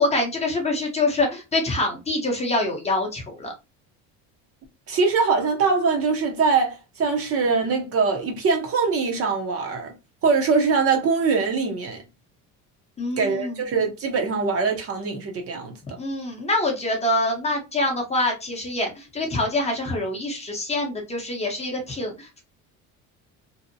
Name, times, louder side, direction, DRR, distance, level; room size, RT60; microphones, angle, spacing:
voice 1, 0.0-3.5 13.0-13.6 16.0-22.4, left 2 dB, 20° left, 0.6 m, -25 dB
voice 2, 4.9-9.9 10.2-12.0 13.2-15.7, right 4 dB, 40° right, 0.6 m, -22 dB
2.6 x 2.0 x 2.5 m
cardioid pair, 135°, 36 cm